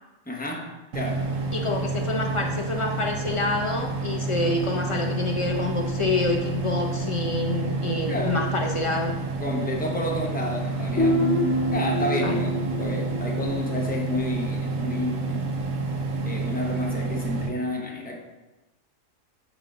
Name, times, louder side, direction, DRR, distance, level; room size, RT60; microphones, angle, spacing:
voice 1, 0.3-1.3 8.1-8.4 9.4-11.3 11.7-15.6 16.2-18.2, left 1 dB, 10° left, 0 dB, 0.7 m, -30 dB
sound 1, 0.9-17.5, right 3 dB, 85° right, 1.2 m, -29 dB
voice 2, 1.5-9.2 12.2-12.5, left 3 dB, 45° left, 2 dB, 0.4 m, -27 dB
Guitar, 11.0-14.6, left 1 dB, 60° left, 1.3 m, -27 dB
6.4 x 3.7 x 5.1 m, 1.1 s
omnidirectional pair, 1.4 m